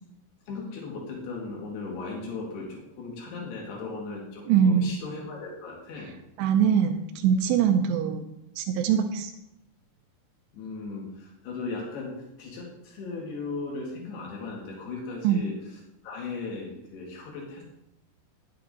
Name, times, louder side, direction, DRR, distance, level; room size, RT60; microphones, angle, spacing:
voice 1, 0.5-6.1 10.5-17.6, left 3 dB, 75° left, -2 dB, 4.4 m, -37 dB
voice 2, 4.5-5.0 6.4-8.3 8.6-9.3 15.2-15.4, right 8 dB, 90° right, 4 dB, 2.8 m, -23 dB
10.5 x 8.7 x 3.9 m, 0.85 s
omnidirectional pair, 4.7 m